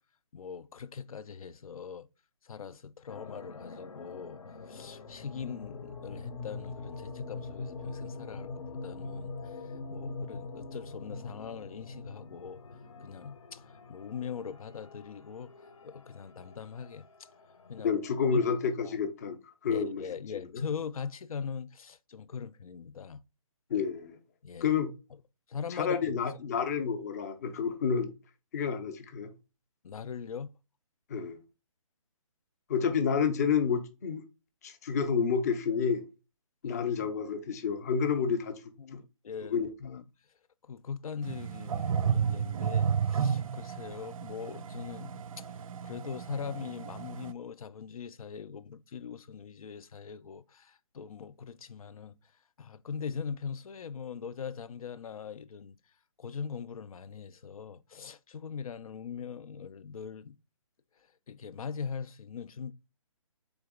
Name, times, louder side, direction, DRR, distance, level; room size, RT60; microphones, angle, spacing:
voice 1, 0.3-2.1 2.4-4.4 4.7-12.6 13.0-17.1 17.7-18.0 18.3-18.4 18.8-19.0 19.7-23.2 24.4-24.7 25.5-26.3 29.8-30.5 36.6-37.1 38.8-40.0 40.7-52.2 52.6-55.8 56.2-60.4 61.3-62.7, left 6 dB, 85° left, 0.5 m, -41 dB
sound 1, 3.1-18.7, left 3 dB, 70° left, 0.8 m, -44 dB
voice 2, 17.8-20.0 20.5-20.6 23.7-24.2 24.6-24.9 25.7-28.1 28.5-29.3 31.1-31.4 32.7-34.2 34.6-36.0 36.6-38.6 39.5-39.7, left 6 dB, 30° left, 0.5 m, -29 dB
sound 2, 41.2-47.3, right 7 dB, 75° right, 0.4 m, -32 dB
3.9 x 3.4 x 3.6 m
hypercardioid pair, 165°, 18 cm